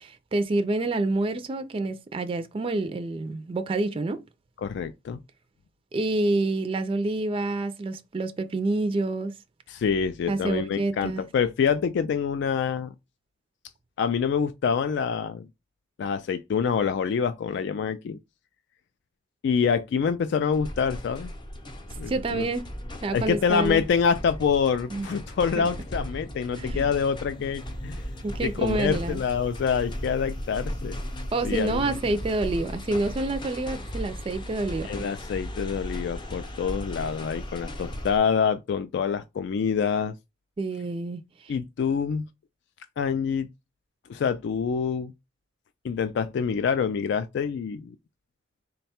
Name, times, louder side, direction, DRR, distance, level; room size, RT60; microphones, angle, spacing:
voice 1, 0.0-4.2 5.9-9.3 10.3-11.2 22.1-22.7 23.0-23.8 24.9-25.1 25.6-25.7 26.6-26.8 28.2-29.2 31.3-34.9 40.6-41.5, right 2 dB, 30° right, 0.4 m, -28 dB
voice 2, 4.6-5.2 9.7-12.9 14.0-15.5 16.0-18.2 19.4-21.3 22.0-22.5 23.1-28.0 28.4-31.0 31.4-32.0 34.8-40.1 41.5-42.3 43.0-43.5 44.1-45.1 45.8-48.0, left 6 dB, 65° left, 0.3 m, -26 dB
sound 1, 20.5-38.2, equal, 25° left, 0.6 m, -36 dB
3.8 x 2.2 x 4.2 m
head